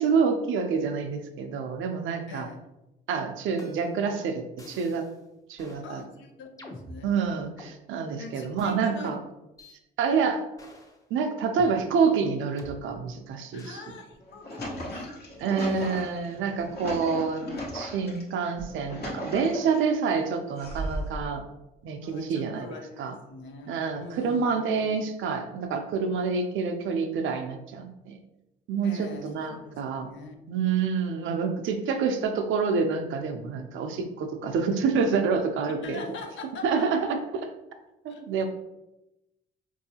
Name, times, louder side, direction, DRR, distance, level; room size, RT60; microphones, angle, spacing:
voice 1, 0.0-2.5 3.1-5.1 5.5-6.0 7.0-9.2 10.0-10.4 11.1-13.8 15.4-17.4 17.7-21.4 21.8-23.1 23.7-28.2 28.7-30.1 30.5-36.0 36.6-37.5 38.0-38.5, right 5 dB, 80° right, 6 dB, 0.6 m, -27 dB
voice 2, 2.3-2.7 5.8-7.1 8.2-9.2 13.5-15.1 15.7-16.0 16.4-16.7 22.0-25.0 28.8-30.4 30.6-30.8 35.8-36.9 38.1-38.5, left 4 dB, 75° left, 4 dB, 0.7 m, -43 dB
sound 1, 3.6-4.1 4.6-5.1 5.6-5.9 6.6-7.7 8.6-8.7 9.6-9.8 10.6-11.0 11.6-11.7 12.6-12.7 13.6-13.8 14.6-15.2 15.6-16.8 17.6-17.8 18.6-19.0, left 1 dB, 15° left, 0.7 m, -47 dB
sound 2, 14.1-18.2 18.7-19.9 20.6-21.3, equal, 55° left, 1.1 m, -36 dB
4.6 x 2.7 x 2.8 m, 0.92 s
cardioid pair, 90°, 20 cm